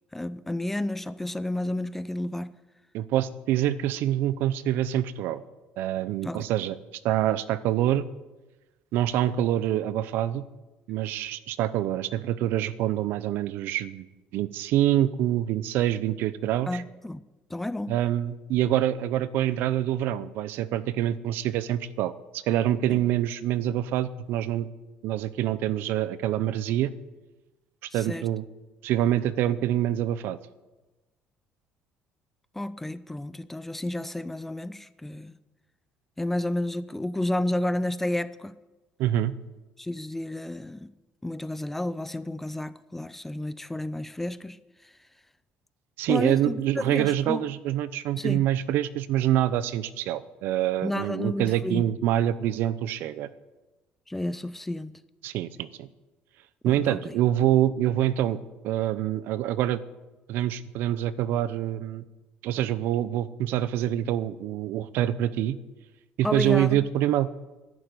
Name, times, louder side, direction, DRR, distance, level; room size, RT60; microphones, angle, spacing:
voice 1, 0.1-2.5 6.2-6.4 16.7-17.2 17.5-18.0 22.9-23.0 27.9-28.3 32.6-35.3 36.2-38.5 39.8-40.9 41.2-44.6 46.1-46.6 46.8-47.5 48.1-48.5 50.8-51.8 54.1-54.9 56.7-57.0 66.2-66.8, left 1 dB, 5° left, 15 dB, 0.4 m, -31 dB
voice 2, 2.9-5.4 5.8-6.8 7.0-8.1 8.9-10.4 10.9-14.1 14.3-16.8 17.9-24.7 25.0-26.9 27.9-28.4 28.8-30.4 39.0-39.3 46.0-53.3 55.2-55.9 56.6-59.8 60.3-62.0 62.4-65.6 66.2-67.3, right 12 dB, 70° right, 16 dB, 0.7 m, -26 dB
11.0 x 9.0 x 9.7 m, 1.1 s
cardioid pair, 155°, 4 cm